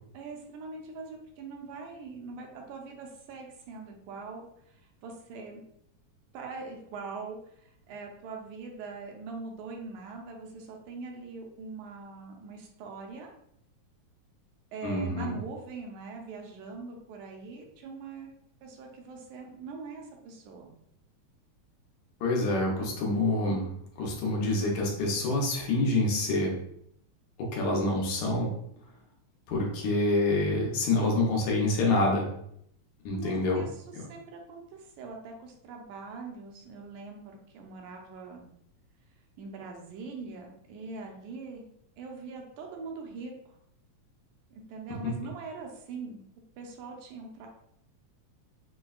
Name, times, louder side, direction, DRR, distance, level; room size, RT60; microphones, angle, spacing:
voice 1, 0.1-5.6 6.3-13.3 14.7-18.3 18.6-20.7 33.1-38.5 39.4-41.7 42.0-43.6 44.5-46.2 46.6-47.5, right 4 dB, 80° right, 1 dB, 2.0 m, -42 dB
voice 2, 14.8-15.3 22.2-23.7 24.0-26.5 27.4-28.5 29.5-32.3 33.1-33.6, left 2 dB, 75° left, -2 dB, 2.0 m, -27 dB
6.0 x 2.2 x 2.3 m, 0.72 s
omnidirectional pair, 3.4 m